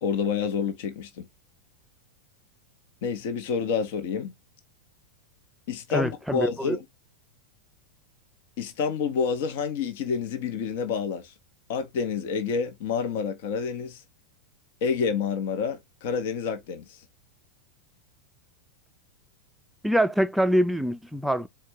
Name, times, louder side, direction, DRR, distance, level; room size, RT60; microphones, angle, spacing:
voice 1, 0.0-1.3 3.0-4.3 5.7-6.8 8.6-11.3 11.7-14.0 14.8-17.0, left 6 dB, 50° left, 0.9 m, -28 dB
voice 2, 5.9-6.8 19.8-21.5, equal, ahead, 0.4 m, -24 dB
4.4 x 2.3 x 4.3 m
figure-of-eight pair, 90°, 0 cm